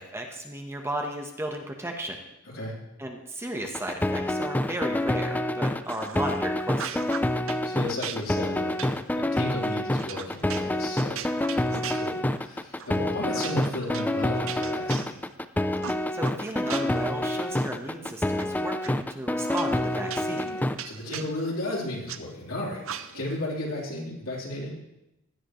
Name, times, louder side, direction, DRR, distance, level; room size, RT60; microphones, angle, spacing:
voice 1, 0.0-2.2 3.0-7.0 16.1-20.5, right 1 dB, 10° right, 2 dB, 1.1 m, -34 dB
sound 1, 3.6-20.8, left 1 dB, 10° left, 0.4 m, -27 dB
sound 2, 5.9-6.4 6.7-7.6 8.0-12.5 12.8-13.0 13.3-15.4 15.8-17.1 17.5-18.4 18.8-18.9 19.5-22.2 22.8-23.4, right 8 dB, 70° right, 0.6 m, -39 dB
voice 2, 7.6-11.2 11.6-15.2 20.1-24.8, left 1 dB, 75° left, -4 dB, 3.9 m, -34 dB
16.5 x 11.0 x 3.2 m, 0.89 s
head